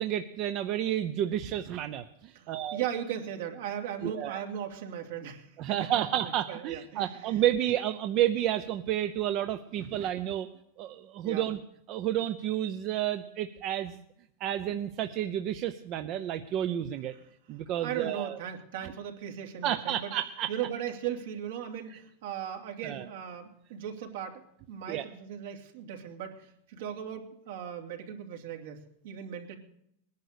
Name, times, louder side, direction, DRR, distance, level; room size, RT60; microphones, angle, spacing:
voice 1, 0.0-2.8 4.0-4.4 5.6-10.5 10.8-11.6 11.9-14.0 14.4-17.1 17.5-18.4 19.6-20.5 22.8-23.1 24.9-25.0, right 11 dB, 35° right, 9 dB, 0.7 m, -30 dB
voice 2, 2.3-7.4 11.2-11.5 17.8-20.1 20.5-29.6, right 9 dB, 70° right, 4 dB, 2.8 m, -38 dB
19.5 x 10.5 x 6.8 m, 0.74 s
supercardioid pair, 165°, 0 cm